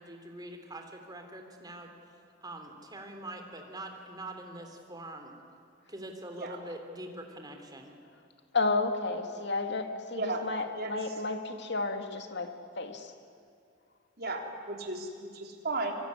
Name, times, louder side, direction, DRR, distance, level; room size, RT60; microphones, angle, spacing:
voice 1, 0.0-1.9 2.4-5.4 5.9-7.9, right 1 dB, 20° right, 4 dB, 3.4 m, -44 dB
voice 2, 8.5-12.5 12.8-13.1, left 3 dB, 60° left, 5 dB, 2.3 m, -32 dB
voice 3, 10.1-10.5 10.8-10.9 14.2-16.0, right 2 dB, 55° right, 2 dB, 3.6 m, -35 dB
25.5 x 23.5 x 9.8 m, 2.3 s
head